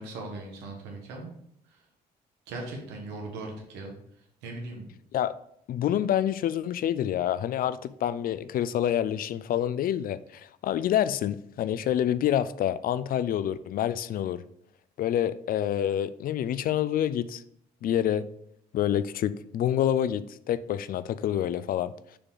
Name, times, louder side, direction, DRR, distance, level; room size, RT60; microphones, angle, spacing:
voice 1, 0.0-1.3 1.7-1.8 2.5-3.9 4.4-4.8, right 2 dB, 90° right, 1.4 m, -39 dB
voice 2, 5.7-14.4 15.0-17.4 17.8-18.3 18.7-21.9, left 10 dB, 60° left, 0.4 m, -27 dB
6.7 x 3.7 x 3.9 m
supercardioid pair, 65°, 17 cm